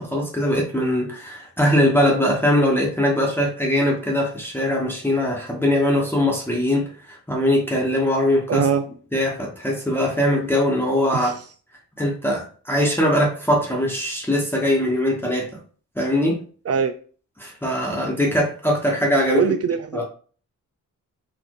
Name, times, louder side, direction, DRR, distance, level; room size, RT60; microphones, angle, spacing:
voice 1, 0.0-8.7 9.1-11.4 12.0-15.5 16.0-16.4 17.4-19.4 19.9-20.0, left 1 dB, 5° left, -3 dB, 1.2 m, -21 dB
voice 2, 8.5-8.8 11.2-11.3 16.7-16.9 19.3-20.0, right 7 dB, 55° right, 7 dB, 0.4 m, -21 dB
4.4 x 2.6 x 4.7 m, 0.41 s
wide cardioid pair, 110°, 30 cm